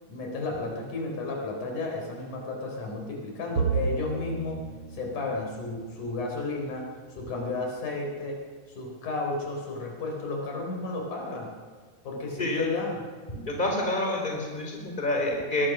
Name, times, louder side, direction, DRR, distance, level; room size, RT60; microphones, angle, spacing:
voice 1, 0.1-4.6 4.9-6.9 7.1-8.4 8.7-11.5 12.0-13.0, left 3 dB, 70° left, 1 dB, 5.6 m, -33 dB
Bowed string instrument, 3.6-7.1, right 5 dB, 50° right, 4.3 m, -33 dB
voice 2, 13.3-15.7, left 1 dB, 15° left, 1 dB, 4.2 m, -28 dB
22.5 x 20.0 x 6.3 m, 1.5 s
omnidirectional pair, 3.7 m